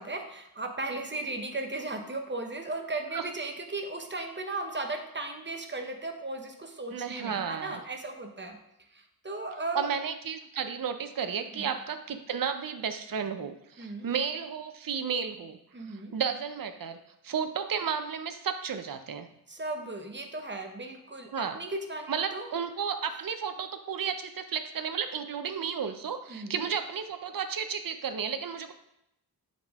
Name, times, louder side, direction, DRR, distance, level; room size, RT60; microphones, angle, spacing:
voice 1, 0.0-8.6 8.9-9.9 11.5-11.7 13.8-14.1 15.7-16.2 19.5-22.5 26.3-26.6, right 2 dB, 30° right, 5 dB, 0.9 m, -36 dB
voice 2, 6.9-7.8 9.7-15.6 15.9-19.3 21.3-21.6 22.1-28.7, right 7 dB, 60° right, 8 dB, 0.6 m, -33 dB
7.5 x 5.1 x 3.5 m, 0.80 s
wide cardioid pair, 85°, 38 cm